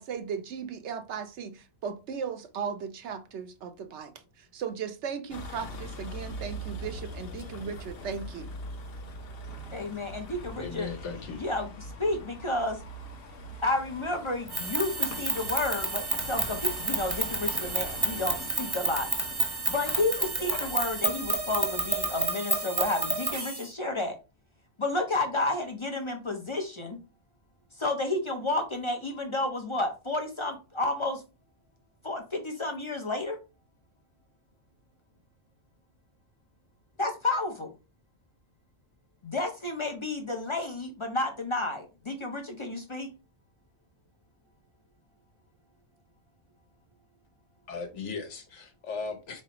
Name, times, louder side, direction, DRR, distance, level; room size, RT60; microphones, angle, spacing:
voice 1, 0.0-4.1 4.4-8.5, right 6 dB, 75° right, 0.9 m, -37 dB
Vehicle, 5.3-22.2, left 1 dB, 60° left, 0.9 m, -42 dB
voice 2, 9.7-10.9 11.4-11.7 12.0-12.8 13.6-19.1 19.7-24.2 24.8-27.0 27.8-31.2 32.0-33.4 37.0-37.7 39.2-43.1, left 2 dB, 35° left, 0.5 m, -31 dB
voice 3, 10.6-11.4 47.7-49.4, left 4 dB, 75° left, 1.2 m, -37 dB
sound 1, 14.5-23.7, right 3 dB, 25° right, 0.7 m, -30 dB
4.1 x 3.2 x 2.9 m
omnidirectional pair, 1.2 m